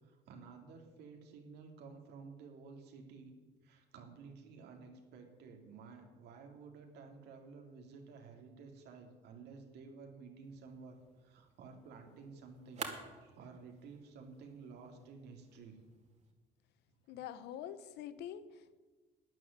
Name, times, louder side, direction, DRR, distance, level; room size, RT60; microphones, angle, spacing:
voice 1, 0.0-3.3 3.6-15.8 17.1-17.2, right 4 dB, 80° right, 3 dB, 3.1 m, -53 dB
sound 1, 10.4-16.3, right 5 dB, 40° right, 2.6 m, -52 dB
voice 2, 17.1-18.8, left 10 dB, 80° left, 14 dB, 1.0 m, -46 dB
12.5 x 9.9 x 8.9 m, 1.3 s
cardioid pair, 110°, 17 cm